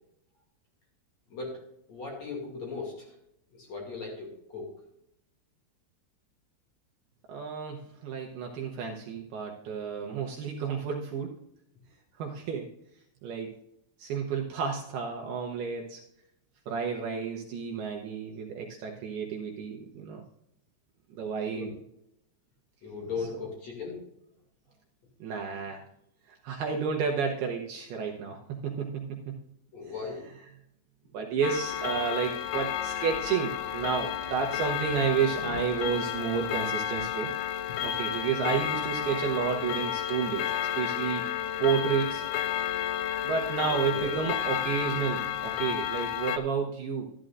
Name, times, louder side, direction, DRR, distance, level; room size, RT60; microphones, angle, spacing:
voice 1, 1.9-3.1 3.7-4.7 21.1-21.7 22.8-24.0 29.7-30.3 38.4-38.6 43.7-44.2, left 4 dB, 45° left, -2 dB, 3.1 m, -37 dB
voice 2, 7.3-11.3 12.2-12.7 13.2-13.5 14.0-16.0 16.7-20.2 21.1-21.7 23.2-23.3 25.2-25.8 26.3-29.3 31.1-37.4 37.8-41.3 41.6-42.2 43.2-47.1, right 6 dB, 75° right, 0 dB, 2.5 m, -31 dB
Clock, 31.4-46.4, left 10 dB, 85° left, 2.4 m, -32 dB
12.5 x 12.5 x 2.5 m, 0.80 s
omnidirectional pair, 5.3 m